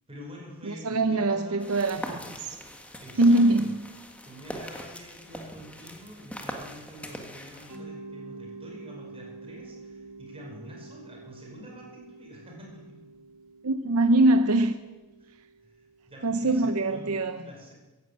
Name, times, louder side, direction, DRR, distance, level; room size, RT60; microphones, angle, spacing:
voice 1, 0.1-2.5 3.0-3.7 4.2-13.0 15.2-15.3 15.6-17.7, equal, 25° right, 5.2 m, -47 dB
voice 2, 0.6-2.2 3.2-3.9 13.6-14.8 16.2-17.4, right 2 dB, 75° right, 0.8 m, -23 dB
sound 1, 1.6-7.8, equal, 5° left, 1.6 m, -42 dB
Mallet percussion, 7.7-16.4, right 3 dB, 60° right, 2.2 m, -47 dB
15.0 x 11.0 x 8.7 m
head